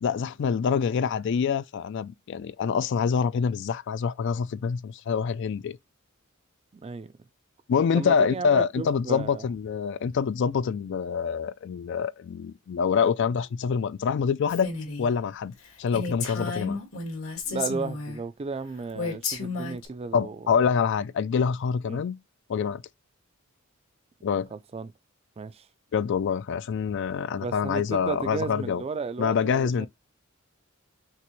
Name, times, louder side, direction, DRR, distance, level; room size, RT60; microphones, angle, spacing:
voice 1, 0.0-5.8 7.7-14.7 15.0-16.8 20.1-22.2 22.5-22.8 24.2-24.5 25.9-28.8 29.2-29.9, left 6 dB, 60° left, 0.3 m, -26 dB
voice 2, 6.8-7.1 7.9-9.4 17.5-20.5 21.9-22.0 24.5-24.9 25.4-25.7 27.4-29.9, right 4 dB, 30° right, 0.3 m, -34 dB
Female speech woman speaking, 14.5-15.1 15.5-15.6 15.9-18.2 18.9-19.9, left 4 dB, 85° left, 1.9 m, -32 dB
5.9 x 3.0 x 3.1 m
head